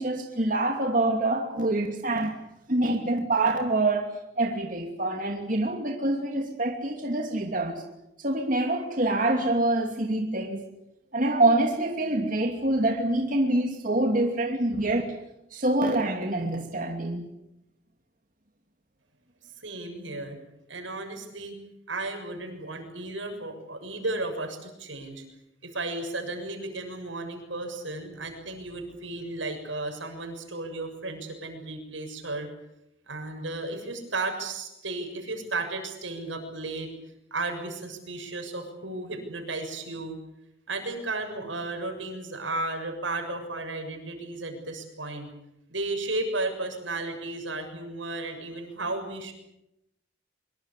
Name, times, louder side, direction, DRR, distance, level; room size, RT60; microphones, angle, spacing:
voice 1, 0.0-2.4 2.7-7.8 8.2-10.7 11.1-15.1 15.5-17.3, right 2 dB, 45° right, 3 dB, 2.6 m, -26 dB
voice 2, 19.6-20.4 20.7-21.6 21.9-25.2 25.6-32.5 33.1-36.9 37.3-40.2 40.7-45.3 45.7-49.3, right 2 dB, 85° right, 5 dB, 6.9 m, -34 dB
25.0 x 23.0 x 8.4 m, 0.87 s
head